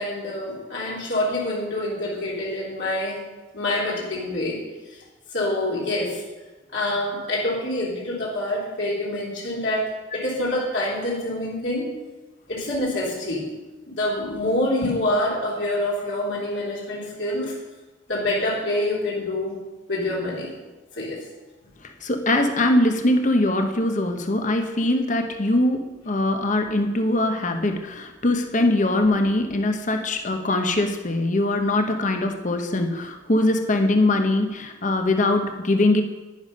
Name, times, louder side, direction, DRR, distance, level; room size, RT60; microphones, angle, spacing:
voice 1, 0.0-3.2 3.5-4.6 5.3-6.2 6.7-11.9 12.5-13.5 13.9-17.6 18.1-19.6 19.9-20.5 20.9-21.2, left 1 dB, 65° left, -5 dB, 3.4 m, -26 dB
voice 2, 21.8-36.0, left 1 dB, 40° left, 6 dB, 1.0 m, -22 dB
10.5 x 10.5 x 5.4 m, 1.2 s
head